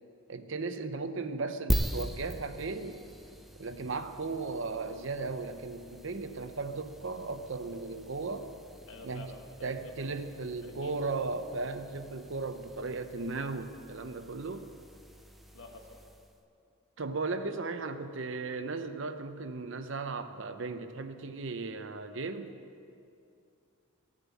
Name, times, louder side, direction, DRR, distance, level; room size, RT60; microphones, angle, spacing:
voice 1, 0.3-3.0 3.6-8.5 9.0-9.3 9.6-14.7 17.0-22.5, right 3 dB, 60° right, 9 dB, 0.7 m, -36 dB
sound 1, 1.7-16.4, equal, ahead, 0.5 m, -41 dB
voice 2, 8.9-10.3 10.6-11.0 15.5-16.0, left 2 dB, 70° left, 2 dB, 1.6 m, -49 dB
15.0 x 7.4 x 8.3 m, 2.5 s
head